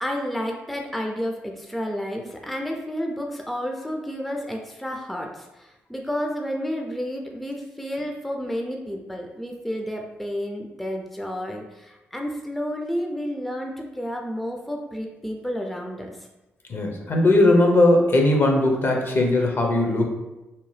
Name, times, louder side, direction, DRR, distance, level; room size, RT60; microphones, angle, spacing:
voice 1, 0.0-16.1, equal, 5° left, 1 dB, 0.4 m, -31 dB
voice 2, 16.7-20.0, left 2 dB, 50° left, 1 dB, 0.7 m, -19 dB
2.8 x 2.1 x 3.2 m, 1.0 s
supercardioid pair, 50°, 5 cm